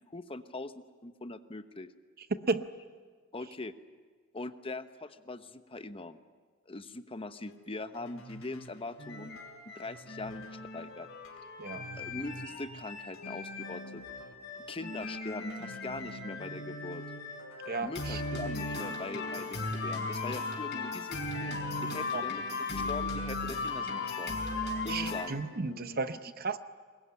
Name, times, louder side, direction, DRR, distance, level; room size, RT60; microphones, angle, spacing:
voice 1, 0.1-1.9 3.3-3.7 4.3-6.2 6.7-9.4 9.7-11.1 11.9-14.0 14.7-17.0 17.8-22.4 22.7-24.4 24.8-25.4, left 2 dB, 25° left, 11 dB, 1.0 m, -42 dB
sound 1, 7.4-26.0, equal, 75° left, 3.2 m, -53 dB
sound 2, 9.0-25.2, left 3 dB, 50° left, 5.3 m, -37 dB
voice 2, 17.7-18.6 18.8-18.9 22.1-22.2 24.9-26.6, right 3 dB, 45° right, 11 dB, 0.8 m, -34 dB
22.5 x 21.5 x 9.8 m, 1.5 s
head